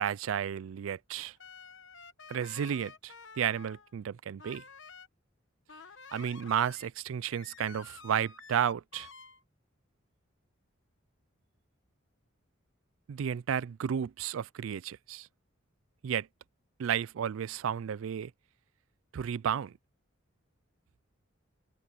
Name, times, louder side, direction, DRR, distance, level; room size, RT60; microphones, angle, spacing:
voice 1, 0.0-1.3 2.3-4.6 6.1-9.1 13.1-15.3 16.0-16.3 16.8-18.3 19.1-19.7, right 8 dB, 80° right, 0.4 m, -32 dB
sound 1, 1.4-3.9 4.4-5.1 5.7-6.9 7.3-9.4, left 5 dB, 65° left, 1.2 m, -51 dB
head